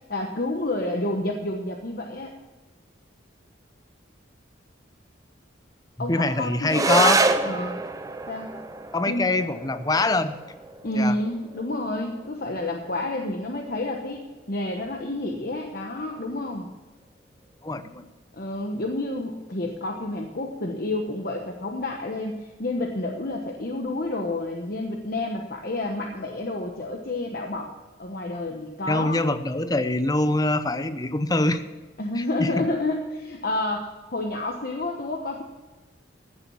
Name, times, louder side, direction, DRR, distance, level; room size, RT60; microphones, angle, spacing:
voice 1, 0.1-2.3 6.0-7.0 7.4-7.8 8.3-8.5 9.1-9.4 10.8-16.7 18.3-27.7 28.0-29.2 32.0-35.4, left 2 dB, 50° left, 2 dB, 1.1 m, -29 dB
voice 2, 6.1-7.2 8.9-10.4 11.0-11.1 17.6-18.0 28.9-31.6 32.2-32.6, left 2 dB, 20° left, 11 dB, 0.6 m, -24 dB
sound 1, 6.7-15.7, right 3 dB, 15° right, 0.6 m, -29 dB
15.0 x 7.2 x 7.1 m, 1.2 s
head